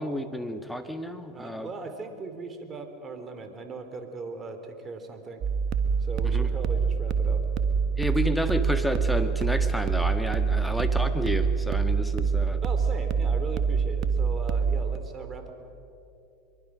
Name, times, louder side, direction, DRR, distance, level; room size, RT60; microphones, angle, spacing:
voice 1, 0.0-1.7 6.2-6.5 8.0-12.6, equal, ahead, 8 dB, 1.7 m, -30 dB
voice 2, 1.3-5.4 6.0-7.5 12.6-15.5, right 3 dB, 25° right, 6 dB, 3.3 m, -39 dB
sound 1, 5.4-15.0, right 5 dB, 45° right, 1.5 m, -25 dB
24.0 x 23.0 x 6.3 m, 2.8 s
hypercardioid pair, 90°, 0 cm